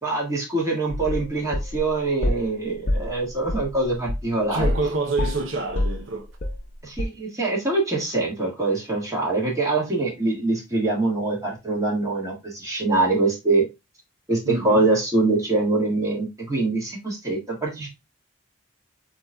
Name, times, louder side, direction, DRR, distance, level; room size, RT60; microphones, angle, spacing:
voice 1, 0.0-4.7 6.8-13.7 14.3-17.9, right 2 dB, 15° right, 1.7 m, -24 dB
sound 1, 0.9-2.5 2.9-4.9 5.2-6.7 7.0-7.1, left 1 dB, 45° left, 0.7 m, -26 dB
voice 2, 4.5-6.3 14.5-14.9, right 3 dB, 75° right, 0.7 m, -27 dB
7.9 x 2.9 x 2.2 m
head